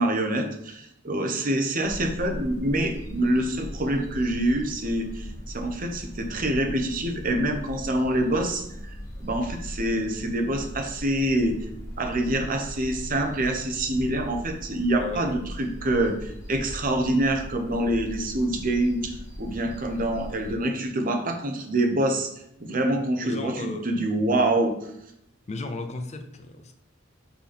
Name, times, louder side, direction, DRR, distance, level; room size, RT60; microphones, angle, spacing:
voice 1, 0.0-8.9 9.2-11.6 12.0-22.3 22.6-24.7, right 1 dB, 45° right, 5 dB, 0.9 m, -26 dB
room-tone WC, 1.8-20.6, equal, 15° left, 1.3 m, -39 dB
voice 2, 15.0-15.6 23.2-23.9 25.5-26.7, left 3 dB, 35° left, 6 dB, 0.6 m, -35 dB
5.6 x 4.2 x 4.3 m, 0.78 s
head